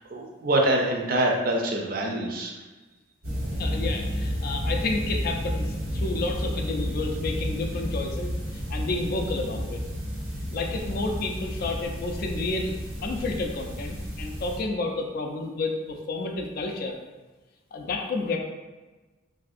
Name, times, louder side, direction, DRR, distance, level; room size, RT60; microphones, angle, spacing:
voice 1, 0.1-2.5, right 1 dB, 45° right, 0 dB, 0.4 m, -25 dB
sound 1, 3.2-14.6, equal, 90° right, 1.0 m, -31 dB
voice 2, 3.6-9.8 10.5-12.7 13.0-17.0 17.7-18.4, left 3 dB, 50° left, 3 dB, 0.3 m, -30 dB
3.3 x 2.6 x 2.4 m, 1.2 s
head